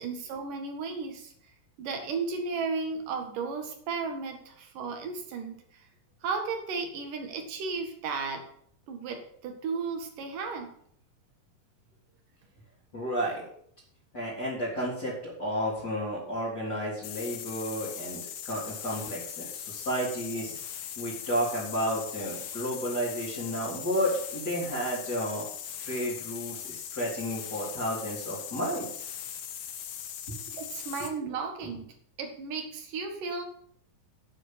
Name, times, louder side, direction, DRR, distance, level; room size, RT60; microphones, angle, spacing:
voice 1, 0.0-1.3 1.8-5.6 6.2-8.4 8.9-10.7 30.5-31.8 32.2-33.4, right 4 dB, 70° right, 4 dB, 3.3 m, -34 dB
voice 2, 12.9-13.4 14.1-18.2 18.5-20.5 21.0-25.5 25.8-28.9, equal, 30° left, -9 dB, 3.9 m, -32 dB
sound 1, 17.0-31.2, left 9 dB, 75° left, 2.7 m, -40 dB
10.0 x 7.2 x 7.5 m, 0.66 s
omnidirectional pair, 4.0 m